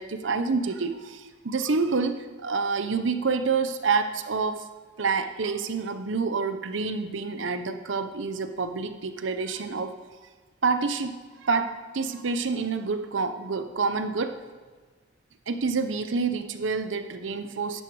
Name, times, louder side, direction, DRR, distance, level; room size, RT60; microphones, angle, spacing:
voice 1, 0.0-4.7 5.0-9.9 10.6-14.4 15.5-17.8, right 4 dB, 75° right, 9 dB, 0.7 m, -28 dB
15.5 x 11.0 x 4.7 m, 1.4 s
head